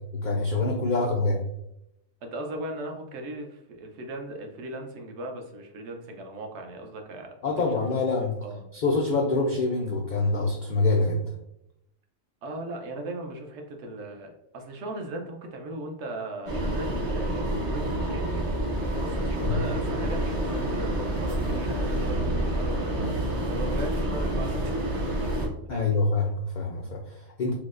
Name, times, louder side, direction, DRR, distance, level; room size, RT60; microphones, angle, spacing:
voice 1, 0.1-1.4 7.4-8.4 8.7-11.2 19.4-19.6 25.7-27.5, left 3 dB, 80° left, -1 dB, 0.4 m, -25 dB
voice 2, 2.2-8.7 12.4-18.4 19.0-23.1 23.5-24.9 25.7-26.0, right 1 dB, 65° right, 3 dB, 0.8 m, -38 dB
sound 1, 16.5-25.5, right 1 dB, 50° right, 0.4 m, -28 dB
4.5 x 2.1 x 2.4 m, 0.82 s
omnidirectional pair, 1.3 m